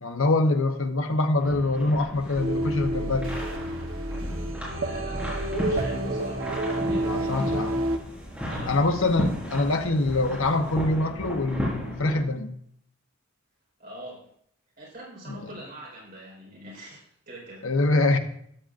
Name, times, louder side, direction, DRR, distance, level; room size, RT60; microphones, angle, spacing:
voice 1, 0.0-3.3 7.0-7.7 8.7-12.5 15.3-15.4 17.6-18.2, left 2 dB, 70° left, 5 dB, 1.1 m, -24 dB
sound 1, 1.4-12.2, equal, 5° right, 4.7 m, -35 dB
sound 2, 2.3-8.0, right 1 dB, 65° right, 1.2 m, -29 dB
voice 2, 4.8-6.5 6.8-7.6 8.4-8.8 13.8-14.3 14.8-17.7, equal, 45° right, -4 dB, 4.5 m, -43 dB
13.5 x 10.5 x 2.6 m, 0.67 s
head